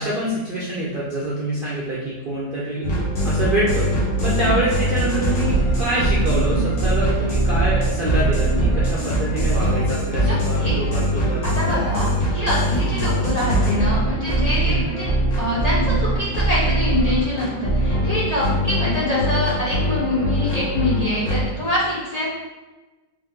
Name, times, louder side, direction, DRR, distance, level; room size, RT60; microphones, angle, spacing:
voice 1, 0.0-2.9 3.2-3.9 4.2-11.4 12.8-13.0 14.6-14.9, right 1 dB, 80° right, -6 dB, 0.4 m, -25 dB
sound 1, 2.8-21.4, right 1 dB, 75° left, 1.8 m, -22 dB
voice 2, 10.2-10.8 11.4-12.1 12.3-22.3, left 1 dB, 30° left, -8 dB, 0.8 m, -25 dB
5.1 x 2.6 x 3.6 m, 1.2 s
omnidirectional pair, 2.0 m